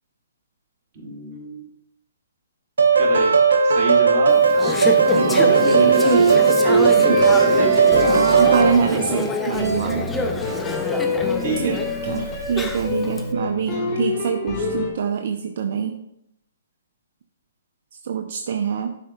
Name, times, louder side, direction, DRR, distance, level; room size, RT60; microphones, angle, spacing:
voice 1, 0.9-1.7 3.0-4.4 5.1-6.2 7.1-9.2 11.4-11.8, right 2 dB, 35° right, -2 dB, 2.1 m, -29 dB
sound 1, 2.8-8.7, right 5 dB, 85° right, 0.8 m, -16 dB
Conversation / Chatter, 4.3-13.2, left 2 dB, 10° left, 0.5 m, -27 dB
sound 2, 4.8-5.0 7.1-14.9, left 3 dB, 25° left, 1.8 m, -28 dB
voice 2, 5.1-6.5 6.9-7.2 8.1-10.1 11.6-16.0 18.0-18.9, right 7 dB, 55° right, 4 dB, 0.5 m, -25 dB
11.0 x 4.4 x 2.2 m, 0.78 s
hypercardioid pair, 145°, 0 cm